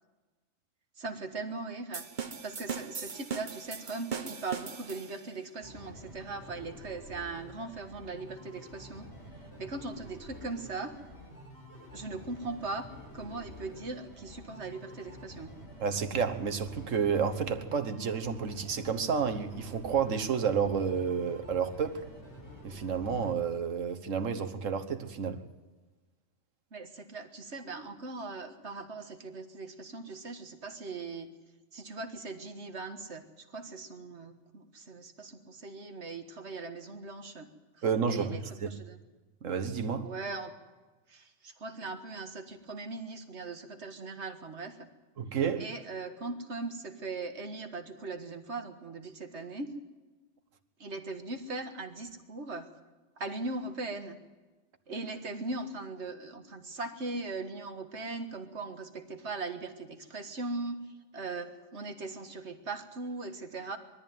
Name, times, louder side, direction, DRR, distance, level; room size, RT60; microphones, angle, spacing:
voice 1, 1.0-2.0 2.4-9.1 9.6-10.9 11.9-12.9 13.1-15.5 26.7-31.3 31.7-37.5 38.1-39.0 40.0-40.5 41.1-44.9 45.6-49.7 50.8-52.7 53.2-54.2 54.9-60.8 61.1-63.8, right 3 dB, 60° right, 1.9 m, -39 dB
sound 1, 1.9-5.4, right 6 dB, 40° right, 1.0 m, -39 dB
sound 2, 5.6-23.3, equal, 55° left, 5.7 m, -49 dB
voice 2, 15.8-22.0 22.6-25.4 37.8-38.3 38.6-38.7 39.4-40.1 45.2-45.7, right 6 dB, 75° right, 1.7 m, -30 dB
21.0 x 13.5 x 9.2 m
omnidirectional pair, 1.3 m